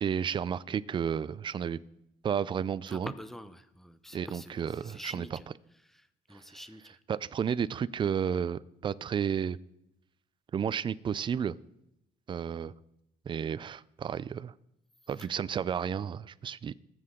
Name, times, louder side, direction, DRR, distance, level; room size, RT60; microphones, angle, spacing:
voice 1, 0.0-1.8 2.2-3.1 4.1-5.4 7.1-9.6 10.5-11.5 12.3-12.7 13.3-14.5 15.1-16.7, right 7 dB, 30° right, 18 dB, 0.4 m, -32 dB
voice 2, 2.9-5.5 5.9-7.0 15.2-15.3, equal, ahead, 11 dB, 0.8 m, -46 dB
20.5 x 7.7 x 3.8 m, 0.83 s
cardioid pair, 110°, 17 cm